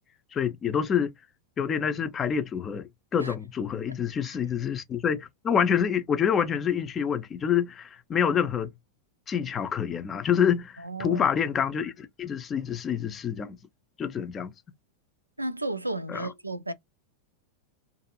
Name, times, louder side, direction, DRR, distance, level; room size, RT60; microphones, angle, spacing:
voice 1, 0.3-1.1 1.6-8.7 9.3-13.6 14.0-14.5 16.1-16.3, left 8 dB, 25° left, 0.5 m, -27 dB
voice 2, 10.8-11.3 15.4-16.7, right 2 dB, 85° right, 0.3 m, -33 dB
2.6 x 2.5 x 2.7 m
figure-of-eight pair, 90°, 0 cm